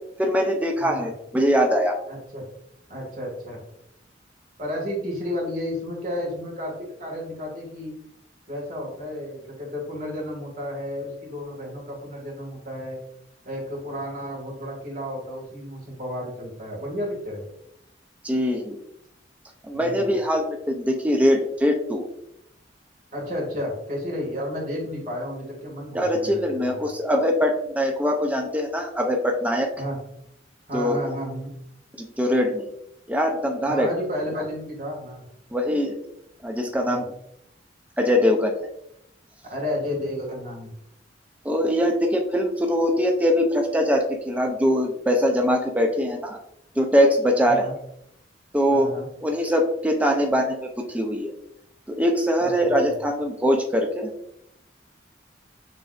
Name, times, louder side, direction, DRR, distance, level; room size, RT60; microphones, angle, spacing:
voice 1, 0.2-1.9 18.2-18.8 19.6-22.0 25.9-29.7 30.7-31.0 32.0-32.7 33.1-33.9 35.5-36.0 36.4-37.1 38.0-38.5 41.4-46.4 46.8-47.7 48.5-51.3 51.9-54.1, equal, 10° right, 2 dB, 0.4 m, -22 dB
voice 2, 0.8-1.1 2.1-2.5 2.9-3.6 4.6-7.9 8.5-13.0 13.5-17.5 19.7-20.1 23.1-26.9 29.8-30.1 30.7-31.6 33.6-35.2 36.8-37.1 39.5-40.7 47.4-47.7 48.7-49.1 52.4-52.5 52.8-52.9, left 1 dB, 45° right, -2 dB, 1.8 m, -32 dB
6.1 x 3.3 x 2.4 m, 0.77 s
head